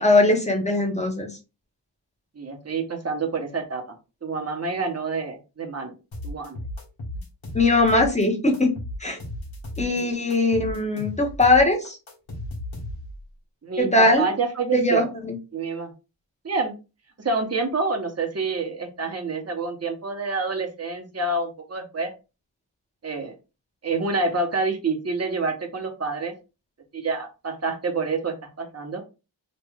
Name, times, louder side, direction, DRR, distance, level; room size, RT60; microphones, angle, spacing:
voice 1, 0.0-1.3 7.5-8.7 9.0-9.2 9.8-12.0 13.8-14.3 14.7-15.3, left 2 dB, 15° left, 2 dB, 1.1 m, -20 dB
voice 2, 2.3-3.8 4.2-5.9 6.2-6.6 13.6-15.1 15.5-15.9 16.4-16.7 17.2-22.1 23.0-23.3 23.8-26.3 26.9-29.0, right 3 dB, 35° right, 4 dB, 1.0 m, -27 dB
sound 1, 6.1-8.3 8.5-10.0 10.3-13.2, left 1 dB, 80° left, 1.3 m, -35 dB
3.0 x 2.5 x 3.5 m, 0.29 s
wide cardioid pair, 70°, 46 cm